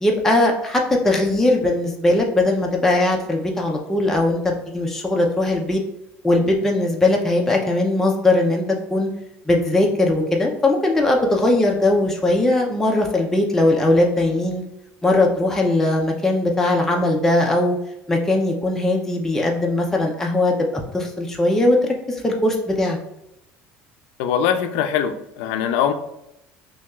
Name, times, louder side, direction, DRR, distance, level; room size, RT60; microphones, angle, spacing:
voice 1, 0.0-5.8 6.2-8.6 8.9-9.1 9.5-14.6 15.0-17.8 18.1-21.8 22.1-23.0, left 2 dB, 10° left, 0 dB, 0.5 m, -19 dB
voice 2, 24.2-25.9, left 8 dB, 85° left, 8 dB, 0.4 m, -22 dB
5.8 x 2.3 x 2.3 m, 0.83 s
cardioid pair, 125°, 5 cm